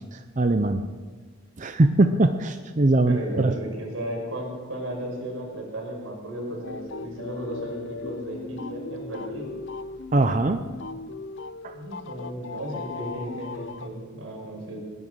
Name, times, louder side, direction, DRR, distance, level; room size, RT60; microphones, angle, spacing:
voice 1, 0.1-0.8 1.6-3.5 10.1-10.6 11.6-11.7, right 2 dB, 35° right, 8 dB, 0.6 m, -21 dB
voice 2, 3.1-9.6 11.7-14.8, right 1 dB, 90° right, -1 dB, 5.9 m, -35 dB
sound 1, 6.6-13.9, left 3 dB, 60° left, 0.6 m, -38 dB
19.5 x 11.0 x 6.4 m, 1.5 s
head